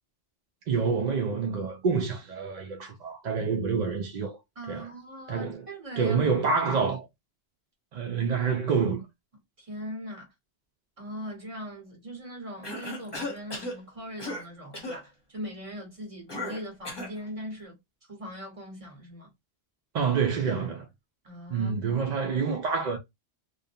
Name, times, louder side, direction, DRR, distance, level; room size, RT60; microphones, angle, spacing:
voice 1, 0.7-4.4 4.7-4.9 5.3-5.6 6.0-7.1 7.9-9.1 19.9-20.8 21.5-23.0, right 5 dB, 55° right, 0.5 m, -27 dB
voice 2, 4.5-6.2 9.6-10.3 11.0-17.7 18.1-19.3 21.2-21.7, equal, 30° right, 1.2 m, -40 dB
Cough, 12.6-13.8 14.2-14.5 14.7-15.0 16.3-17.2, left 1 dB, 25° left, 0.8 m, -35 dB
2.5 x 2.1 x 2.6 m
omnidirectional pair, 1.1 m